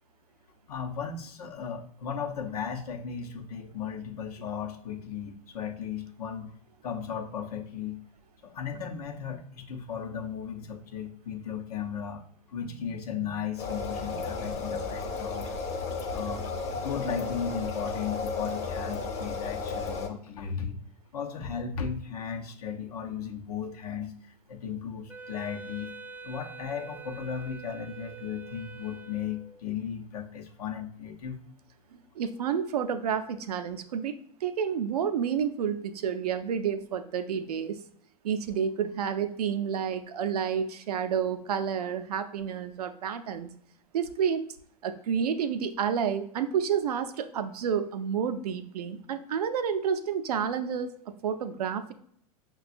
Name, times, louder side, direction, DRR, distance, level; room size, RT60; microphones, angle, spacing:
voice 1, 0.7-6.5 6.8-8.0 8.4-12.2 12.5-15.5 16.1-16.4 16.7-20.8 21.1-25.9 26.2-31.4, left 7 dB, 80° left, 2 dB, 0.7 m, -36 dB
sound 1, 13.6-20.1, left 4 dB, 35° left, 0.7 m, -33 dB
Wind instrument woodwind instrument, 25.1-29.6, right 4 dB, 10° right, 0.3 m, -45 dB
voice 2, 32.2-34.2 34.4-37.8 38.2-43.5 43.9-44.4 44.8-50.9 51.2-51.9, right 7 dB, 80° right, 9 dB, 0.5 m, -30 dB
5.8 x 2.2 x 2.5 m, 0.65 s
hypercardioid pair, 100°, 19 cm